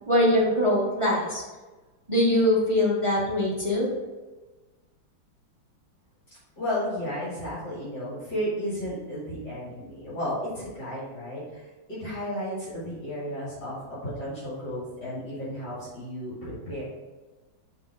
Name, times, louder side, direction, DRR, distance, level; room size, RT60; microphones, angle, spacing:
voice 1, 0.1-1.4 2.1-3.9, left 1 dB, 50° right, -4 dB, 0.3 m, -22 dB
voice 2, 6.6-16.8, equal, 55° left, -9 dB, 2.5 m, -33 dB
5.4 x 3.9 x 4.9 m, 1.2 s
omnidirectional pair, 2.2 m